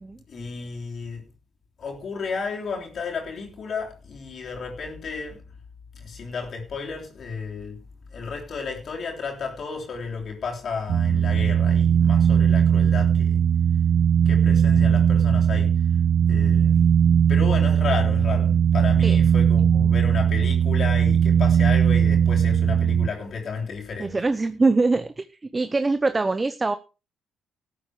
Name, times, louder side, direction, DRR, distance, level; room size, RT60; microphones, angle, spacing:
voice 1, 0.3-1.2 1.8-5.4 5.9-7.8 8.1-13.5 14.3-15.7 16.3-16.8 17.3-24.2, left 5 dB, 55° left, 3.5 m, -32 dB
sound 1, 10.9-23.1, right 8 dB, 65° right, 0.6 m, -19 dB
voice 2, 24.0-26.8, right 3 dB, 25° right, 0.8 m, -23 dB
13.5 x 8.2 x 4.9 m
cardioid pair, 90°, 0 cm